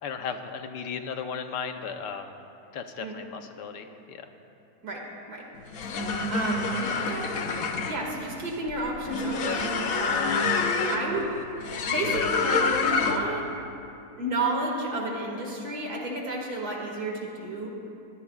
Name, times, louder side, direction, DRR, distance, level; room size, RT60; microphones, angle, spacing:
voice 1, 0.0-2.3 2.7-4.3, left 6 dB, 80° left, 6 dB, 1.5 m, -36 dB
voice 2, 4.8-5.4 5.9-7.3 7.9-10.5 10.9-11.3 11.6-13.5 14.2-17.7, right 2 dB, 65° right, -1 dB, 2.6 m, -32 dB
sound 1, 5.6-13.4, left 4 dB, 60° left, 1.2 m, -27 dB
22.5 x 17.5 x 2.4 m, 2.7 s
omnidirectional pair, 1.8 m